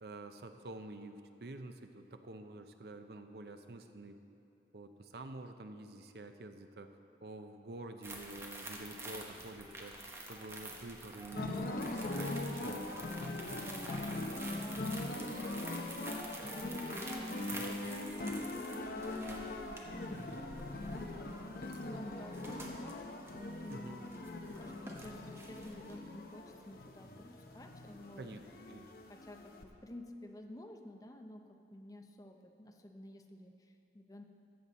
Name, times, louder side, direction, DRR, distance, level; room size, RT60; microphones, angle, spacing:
voice 1, 0.0-4.2 4.7-7.0 7.2-10.0 10.3-12.9 17.5-17.8 23.7-24.0 28.2-28.4 28.7-28.9, right 2 dB, 65° right, 7 dB, 0.6 m, -48 dB
sound 1, 8.0-26.0, right 1 dB, 15° right, 0.9 m, -48 dB
sound 2, 11.3-29.6, left 2 dB, 55° left, 0.7 m, -41 dB
voice 2, 13.7-20.2 20.7-24.2 24.5-28.3 29.1-34.2, left 1 dB, 20° left, 4 dB, 0.6 m, -52 dB
14.0 x 7.8 x 4.1 m, 2.8 s
head